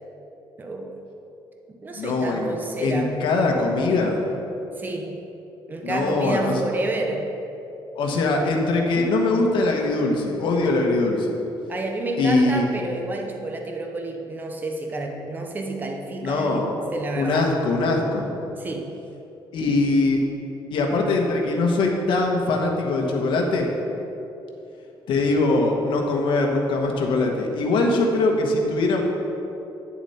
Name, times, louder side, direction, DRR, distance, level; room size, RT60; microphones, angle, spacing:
voice 1, 0.6-1.0 1.7-3.3 4.8-5.2 5.7-7.3 11.7-17.5 18.6-18.9, right 2 dB, 20° right, 2 dB, 0.8 m, -30 dB
voice 2, 1.9-2.5 2.8-4.2 5.8-6.6 8.0-11.4 12.2-12.7 16.2-16.8 17.1-18.3 19.5-20.2 20.7-23.7 25.1-29.0, left 2 dB, 70° left, 1 dB, 1.3 m, -22 dB
9.7 x 7.1 x 4.3 m, 3.0 s
cardioid pair, 155°, 9 cm